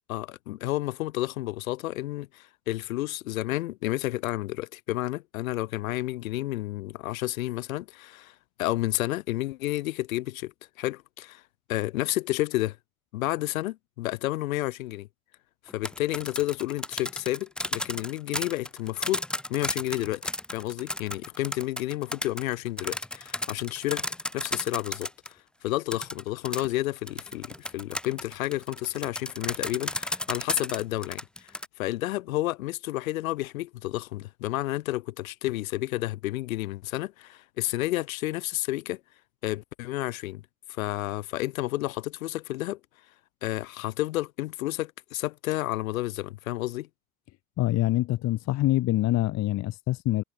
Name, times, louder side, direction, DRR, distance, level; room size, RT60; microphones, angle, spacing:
voice 1, 0.1-11.4 11.7-12.8 13.1-15.1 15.7-20.2 20.5-25.4 25.6-39.0 39.4-40.4 40.7-42.8 43.4-46.9, left 17 dB, 65° left, 2.1 m, -31 dB
sound 1, 15.7-25.3 25.9-31.7, left 1 dB, ahead, 0.5 m, -33 dB
voice 2, 47.6-50.2, left 16 dB, 35° left, 1.0 m, -25 dB
figure-of-eight pair, 70°, 44 cm